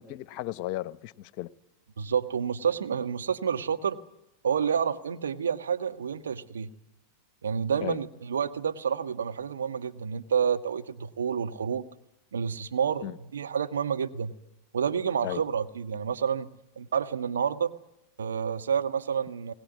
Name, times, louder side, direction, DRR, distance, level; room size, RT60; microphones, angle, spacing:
voice 1, 0.0-1.5 7.8-8.0 13.0-13.2 15.2-15.4, left 15 dB, 50° left, 0.9 m, -35 dB
voice 2, 2.0-4.0 4.4-6.7 7.4-11.8 12.3-14.3 14.7-16.5 16.8-17.7 18.2-19.5, right 7 dB, 80° right, 1.3 m, -29 dB
21.0 x 20.0 x 9.4 m
hypercardioid pair, 95°, 0 cm